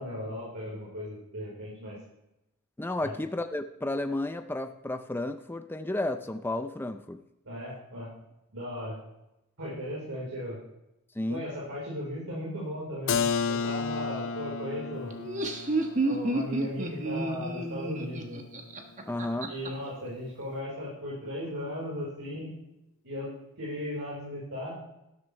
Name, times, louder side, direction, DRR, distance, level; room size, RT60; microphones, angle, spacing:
voice 1, 0.0-2.0 3.0-3.1 7.4-8.1 8.5-9.0 9.6-10.6 11.3-13.2 13.5-15.1 16.0-18.4 19.5-22.5 23.0-23.3 23.6-24.8, left 1 dB, 70° right, -7 dB, 4.4 m, -36 dB
voice 2, 2.8-7.2 11.2-11.4 19.1-19.5, left 1 dB, 10° left, 7 dB, 0.5 m, -32 dB
Keyboard (musical), 13.1-18.7, left 5 dB, 60° left, 0.6 m, -33 dB
Laughter, 15.1-19.7, right 2 dB, 35° right, 1.4 m, -30 dB
12.5 x 12.0 x 3.3 m, 0.88 s
head